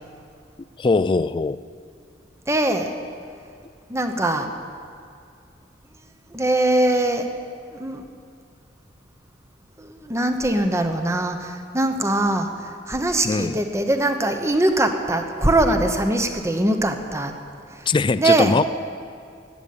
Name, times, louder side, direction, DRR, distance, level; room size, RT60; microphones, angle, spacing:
voice 1, 0.8-1.6 13.2-13.6 17.9-18.6, left 4 dB, 25° left, 16 dB, 0.3 m, -21 dB
voice 2, 2.5-2.9 3.9-4.5 6.3-7.3 7.8-8.0 9.8-17.3 17.7-17.8 18.2-18.6, right 1 dB, 15° right, 6 dB, 1.0 m, -22 dB
14.0 x 9.8 x 8.6 m, 2.3 s
head